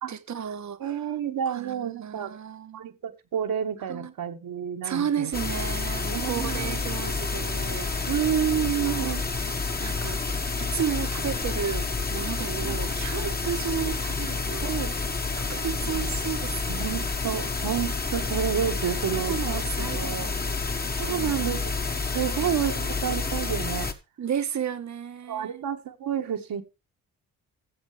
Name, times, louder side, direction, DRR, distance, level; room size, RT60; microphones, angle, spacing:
voice 1, 0.1-1.0 1.5-2.8 3.9-4.1 4.8-8.3 8.7-9.2 9.8-14.7 15.3-17.1 19.1-20.6 21.1-21.5 22.4-22.5 22.7-22.9 24.2-25.6, right 8 dB, 50° right, 1.2 m, -33 dB
voice 2, 0.8-2.3 2.7-5.3 6.1-7.0 8.1-9.2 12.6-13.0 14.6-14.9 15.9-16.1 16.7-20.3 21.0-21.6 22.1-23.9 25.3-26.6, right 9 dB, 65° right, 1.7 m, -30 dB
sound 1, 5.3-23.9, left 4 dB, 25° left, 1.4 m, -29 dB
14.5 x 7.4 x 3.3 m
cardioid pair, 75°, 37 cm